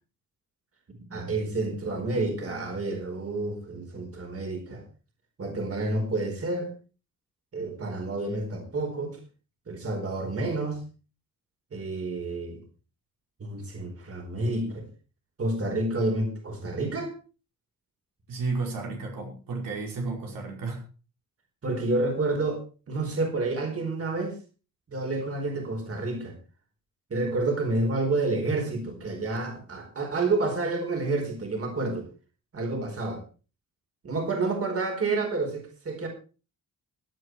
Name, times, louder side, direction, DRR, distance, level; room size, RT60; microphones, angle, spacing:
voice 1, 1.1-4.8 5.4-6.7 7.5-9.2 9.7-10.8 11.7-12.6 13.4-14.9 15.4-17.1 21.6-22.6 22.9-24.4 24.9-26.4 27.1-32.1 32.5-33.2 34.0-36.1, right 2 dB, 45° right, 3 dB, 4.6 m, -29 dB
voice 2, 18.3-20.8, right 3 dB, 90° right, 0 dB, 5.4 m, -32 dB
16.5 x 10.5 x 4.7 m, 0.36 s
wide cardioid pair, 125°, 32 cm